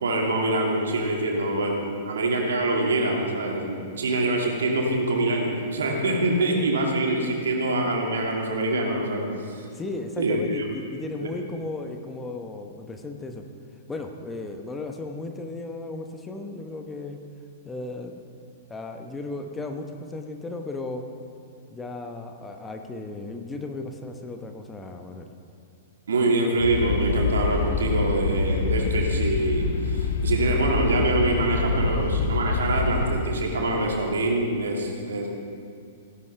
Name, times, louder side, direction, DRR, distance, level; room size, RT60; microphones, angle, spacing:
voice 1, 0.0-9.6 10.2-10.6 11.2-11.3 26.1-35.3, right 2 dB, 70° right, 0 dB, 2.2 m, -25 dB
voice 2, 9.7-13.4 13.9-17.2 17.6-18.2 18.7-21.0 21.7-25.3, left 2 dB, 15° left, 4 dB, 1.0 m, -35 dB
sound 1, 26.6-33.2, left 3 dB, 60° left, 0.9 m, -26 dB
17.0 x 11.0 x 3.3 m, 2.4 s
figure-of-eight pair, 105°, 0 cm